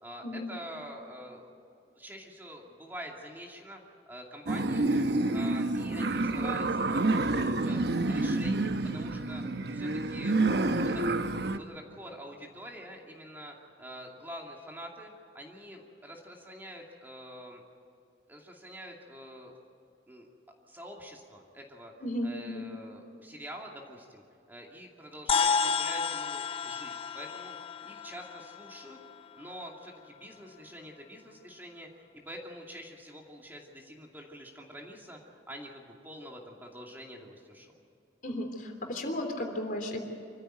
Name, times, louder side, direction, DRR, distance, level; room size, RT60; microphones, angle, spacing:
voice 1, 0.0-1.5 2.0-3.8 4.1-5.0 5.3-7.8 8.1-9.4 9.7-10.3 10.7-11.0 11.5-17.6 18.3-19.5 20.1-20.3 20.7-21.9 22.2-27.6 27.8-29.0 29.3-37.7, equal, 10° right, 0 dB, 2.5 m, -46 dB
sound 1, 4.5-11.6, right 2 dB, 65° right, 0.9 m, -28 dB
voice 2, 22.0-22.6 38.2-40.0, left 1 dB, 50° left, 3 dB, 3.4 m, -34 dB
sound 2, 25.3-29.9, left 5 dB, 30° left, 0.5 m, -32 dB
25.5 x 14.5 x 9.2 m, 2.5 s
head